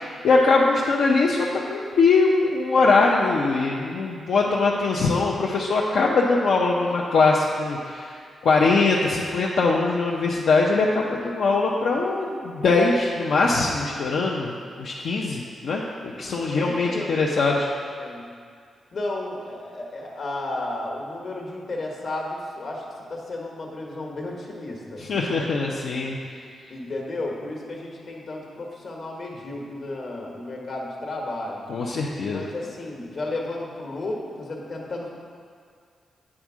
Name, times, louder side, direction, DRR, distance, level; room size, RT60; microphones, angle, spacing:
voice 1, 0.0-17.7 25.0-26.4 31.7-32.4, left 3 dB, 75° left, -3 dB, 0.6 m, -22 dB
voice 2, 16.4-17.2 18.0-18.3 18.9-25.0 26.0-26.2 26.7-31.6 32.3-35.1, left 2 dB, 55° left, -1 dB, 1.3 m, -33 dB
8.7 x 3.6 x 6.1 m, 2.2 s
cardioid pair, 100°, 0 cm